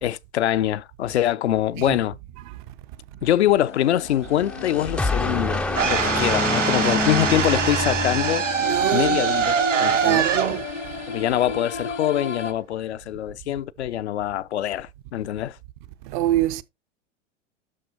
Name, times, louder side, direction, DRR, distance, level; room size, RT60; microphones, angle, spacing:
voice 1, 0.0-2.2 3.2-8.4 8.9-10.3 11.1-15.6, left 12 dB, 65° left, 0.5 m, -24 dB
sound 1, 3.6-12.5, left 5 dB, 80° left, 1.4 m, -34 dB
sound 2, 4.3-8.9, left 2 dB, 5° left, 0.4 m, -27 dB
sound 3, 5.7-11.8, right 7 dB, 80° right, 1.1 m, -24 dB
voice 2, 8.6-9.3 10.0-10.6 16.1-16.6, right 14 dB, 40° right, 0.6 m, -24 dB
12.5 x 4.3 x 2.8 m
figure-of-eight pair, 90°, 36 cm